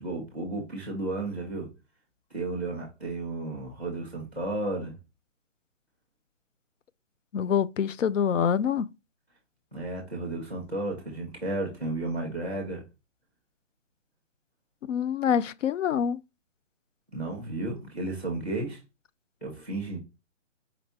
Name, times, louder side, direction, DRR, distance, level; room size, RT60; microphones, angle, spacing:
voice 1, 0.0-1.7 2.3-4.9 9.7-12.8 17.1-18.8 19.4-20.0, right 2 dB, 10° left, 1.1 m, -33 dB
voice 2, 7.3-8.9 14.9-16.2, left 8 dB, 80° left, 0.5 m, -25 dB
5.0 x 3.3 x 2.8 m
hypercardioid pair, 180°, 38 cm